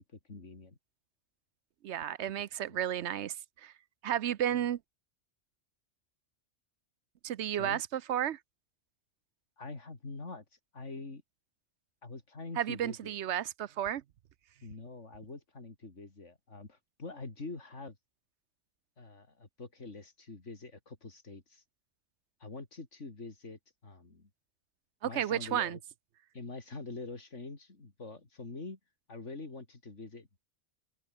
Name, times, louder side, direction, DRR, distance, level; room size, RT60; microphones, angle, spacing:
voice 1, 0.3-0.8 7.6-7.8 9.6-10.4 10.7-11.2 12.0-13.1 14.6-18.0 19.0-21.6 22.4-24.3 25.0-25.8 26.3-28.8 29.1-30.5, left 3 dB, 85° left, 3.7 m, -45 dB
voice 2, 1.8-3.3 3.6-3.7 4.0-4.8 7.2-8.4 12.6-14.0 25.0-25.8, right 10 dB, 70° right, 1.0 m, -32 dB
open air
omnidirectional pair, 1.2 m